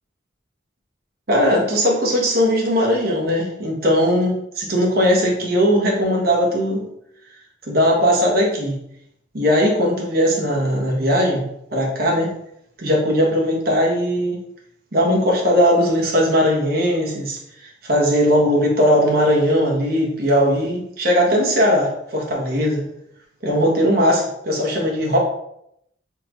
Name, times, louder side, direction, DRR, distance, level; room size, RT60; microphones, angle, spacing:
voice 1, 1.3-6.8 7.7-8.8 9.3-11.4 11.7-12.3 12.8-14.4 14.9-22.8 23.4-25.2, equal, 50° right, -2 dB, 1.3 m, -19 dB
4.3 x 3.8 x 3.1 m, 0.75 s
head